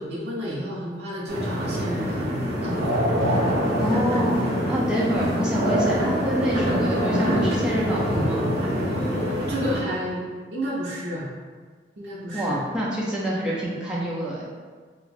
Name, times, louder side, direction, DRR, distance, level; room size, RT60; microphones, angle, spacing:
voice 1, 0.0-2.3 2.6-3.1 5.0-5.2 8.9-10.3 10.5-11.3 12.0-12.6, equal, 75° right, -6 dB, 0.6 m, -31 dB
sound 1, 1.3-9.8, equal, 40° right, 0.8 m, -24 dB
voice 2, 3.8-4.4 4.7-8.5 12.3-14.4, equal, 5° right, -6 dB, 0.5 m, -26 dB
2.6 x 2.2 x 4.0 m, 1.5 s
head